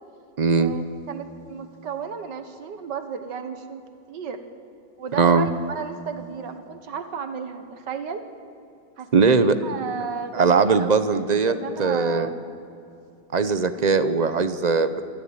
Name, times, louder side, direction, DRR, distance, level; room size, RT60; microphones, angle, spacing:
voice 1, 0.4-0.7 5.1-5.5 9.1-9.6 10.3-11.5 11.8-12.3 13.3-15.1, right 4 dB, 45° right, 11 dB, 0.5 m, -20 dB
voice 2, 1.1-3.8 4.1-4.4 5.0-8.2 9.0-12.4, right 6 dB, 85° right, 8 dB, 2.0 m, -34 dB
26.0 x 13.5 x 8.9 m, 2.6 s
omnidirectional pair, 1.8 m